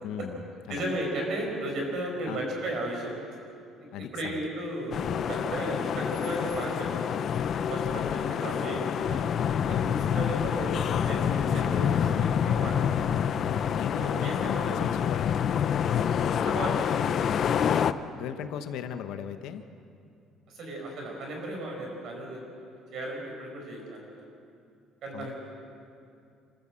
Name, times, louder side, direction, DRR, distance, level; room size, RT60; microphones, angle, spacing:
voice 1, 0.0-1.0 2.3-2.4 3.9-4.4 7.9-8.5 10.1-10.4 13.7-15.6 17.0-17.3 18.2-19.6 25.1-25.3, left 9 dB, 70° left, 8 dB, 1.1 m, -38 dB
voice 2, 0.7-3.1 3.8-7.2 7.6-8.0 8.3-9.2 9.7-12.8 14.0-14.8 15.8-16.1 16.4-17.2 20.5-22.4 22.9-24.1 25.0-25.3, right 1 dB, 50° right, 1 dB, 5.5 m, -35 dB
sound 1, 4.9-17.9, left 8 dB, 40° left, 0.5 m, -27 dB
27.5 x 14.0 x 7.6 m, 2.5 s
cardioid pair, 175°, 0 cm